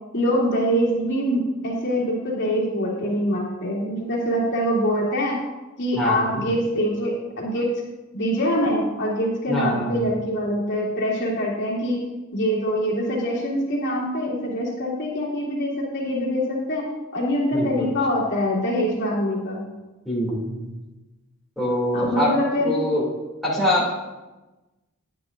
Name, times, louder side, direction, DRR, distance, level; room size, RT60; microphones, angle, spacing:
voice 1, 0.1-5.4 5.8-7.7 8.1-12.0 12.3-16.8 17.1-19.6 21.9-22.7, equal, 55° left, -6 dB, 2.8 m, -24 dB
voice 2, 6.0-6.4 9.5-10.0 17.5-17.9 20.0-20.7 21.6-22.3 22.6-23.0 23.4-23.9, left 1 dB, ahead, -7 dB, 2.7 m, -24 dB
10.5 x 10.5 x 2.6 m, 1.1 s
head